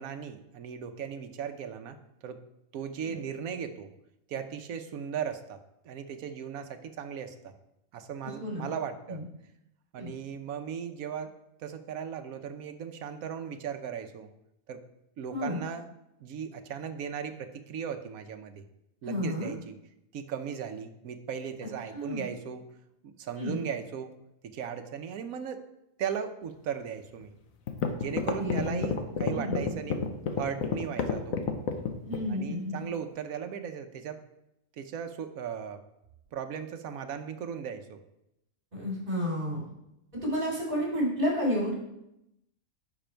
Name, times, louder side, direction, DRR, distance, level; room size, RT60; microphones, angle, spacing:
voice 1, 0.0-2.0 2.2-2.4 2.7-3.9 4.3-5.6 5.8-7.5 7.9-9.2 9.9-11.3 11.6-14.3 14.7-14.8 15.2-15.9 16.2-18.6 19.0-19.7 20.1-22.6 23.0-24.1 24.5-25.6 26.0-27.3 28.0-30.0 30.3-31.4 32.3-34.2 34.8-35.8 36.3-38.0, right 7 dB, 80° right, 7 dB, 1.2 m, -37 dB
voice 2, 8.2-8.7 9.1-9.2 9.9-10.1 15.3-15.6 19.0-19.5 21.9-22.3 23.4-23.6 28.4-28.9 29.3-29.6 32.0-32.8 38.7-39.7 40.2-41.8, equal, 40° right, -3 dB, 3.9 m, -31 dB
sound 1, 27.2-27.3 27.7-32.3, left 6 dB, 70° left, 1.3 m, -29 dB
10.0 x 6.1 x 4.5 m, 0.84 s
omnidirectional pair, 1.5 m